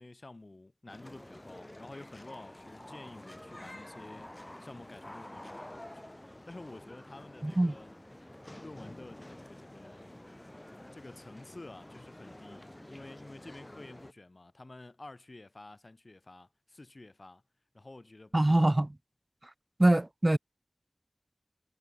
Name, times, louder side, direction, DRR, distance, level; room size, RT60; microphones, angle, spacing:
voice 1, 0.0-6.1 6.4-7.9 8.6-10.2 10.9-17.4 17.7-18.6, left 2 dB, 70° left, 3.4 m, -50 dB
sound 1, 0.9-14.1, left 1 dB, 30° left, 4.9 m, -49 dB
voice 2, 7.4-7.7 18.3-18.9 19.8-20.4, right 1 dB, 40° right, 0.7 m, -24 dB
wide cardioid pair, 45°, 0 cm